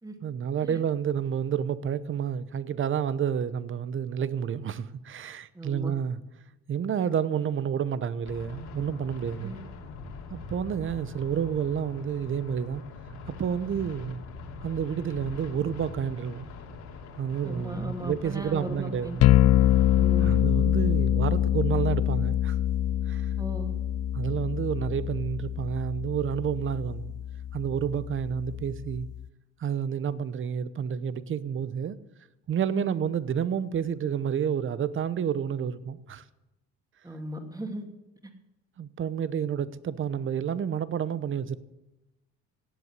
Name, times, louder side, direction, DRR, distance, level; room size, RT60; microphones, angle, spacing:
voice 1, 0.2-6.2 6.7-9.6 10.3-12.8 13.3-14.2 14.6-16.5 17.2-19.3 20.2-22.6 23.1-23.3 24.1-27.1 27.5-29.1 29.6-32.0 32.5-36.2 38.8-41.6, right 8 dB, 45° right, 0.9 m, -30 dB
voice 2, 5.5-5.9 9.4-9.6 17.4-19.2 19.9-20.4 23.4-23.7 32.7-33.0 37.0-37.8, equal, 10° right, 2.7 m, -37 dB
sound 1, 8.2-20.4, left 4 dB, 80° left, 3.1 m, -43 dB
sound 2, 19.2-29.2, left 12 dB, 55° left, 0.5 m, -25 dB
17.0 x 8.2 x 8.2 m
cardioid pair, 100°, 29 cm